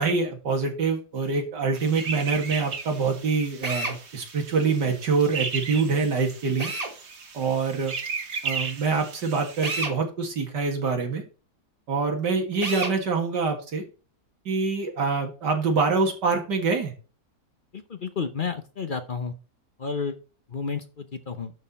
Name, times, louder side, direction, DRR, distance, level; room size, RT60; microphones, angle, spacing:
voice 1, 0.0-6.7 7.3-7.9 8.4-11.2 11.9-13.8 14.5-16.9, right 4 dB, 90° right, 2 dB, 2.5 m, -25 dB
sound 1, 1.7-9.8, right 5 dB, 45° right, 1.4 m, -36 dB
Drill, 3.6-4.0 6.6-6.9 9.6-10.0 12.6-13.0, right 2 dB, 25° right, 1.6 m, -29 dB
voice 2, 17.7-19.3 19.8-20.2 20.5-21.5, left 5 dB, 45° left, 9 dB, 0.7 m, -31 dB
12.0 x 4.3 x 4.2 m, 0.35 s
omnidirectional pair, 1.8 m